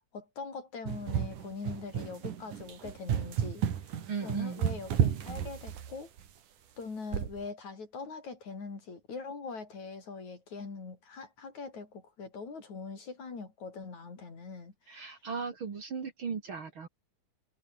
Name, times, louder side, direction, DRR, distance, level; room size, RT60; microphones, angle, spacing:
voice 1, 0.1-6.1 6.8-15.1, left 4 dB, 65° left, 6.5 m, -42 dB
sound 1, 0.9-6.2 7.1-7.4, right 9 dB, 85° right, 3.7 m, -32 dB
voice 2, 4.1-4.6 14.9-16.9, right 6 dB, 45° right, 2.6 m, -37 dB
omnidirectional pair, 3.5 m